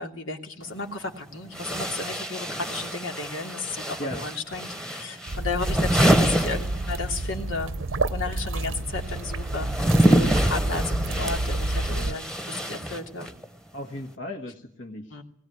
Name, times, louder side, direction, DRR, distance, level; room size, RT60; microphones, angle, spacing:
voice 1, 0.0-7.7 8.1-13.3 15.1-15.2, left 3 dB, 85° left, 3 dB, 3.0 m, -33 dB
sound 1, 0.6-0.7 1.5-7.3 7.6-13.5, right 1 dB, 5° left, 1.2 m, -26 dB
sound 2, 5.3-12.2, right 2 dB, 85° right, 0.9 m, -29 dB
voice 2, 11.9-12.2 13.7-15.2, left 1 dB, 65° left, 3 dB, 1.8 m, -36 dB
20.5 x 18.0 x 9.5 m, 0.63 s
head